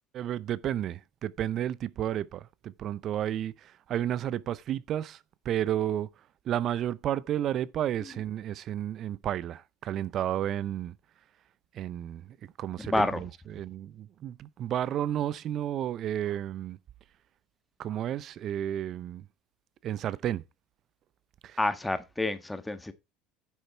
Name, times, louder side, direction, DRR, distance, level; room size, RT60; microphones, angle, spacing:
voice 1, 0.1-5.2 5.4-6.1 6.5-10.9 11.7-16.8 17.8-19.3 19.8-20.4 21.4-21.6, right 11 dB, 50° right, 0.6 m, -32 dB
voice 2, 12.8-13.2 21.6-22.9, left 2 dB, 10° left, 1.5 m, -29 dB
10.0 x 6.7 x 4.5 m
supercardioid pair, 100°, 0 cm